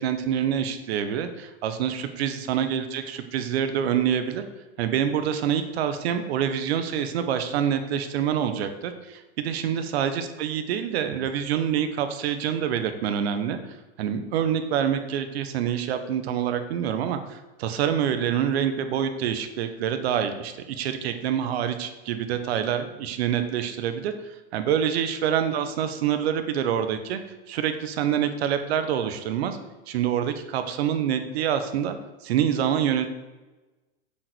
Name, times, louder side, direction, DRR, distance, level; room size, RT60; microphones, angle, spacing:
voice 1, 0.0-4.4 4.8-13.6 14.0-24.1 24.5-27.2 27.5-29.6 29.9-32.0 32.2-33.1, right 9 dB, 70° right, 9 dB, 1.3 m, -26 dB
7.7 x 6.8 x 6.2 m, 1.1 s
hypercardioid pair, 115°, 32 cm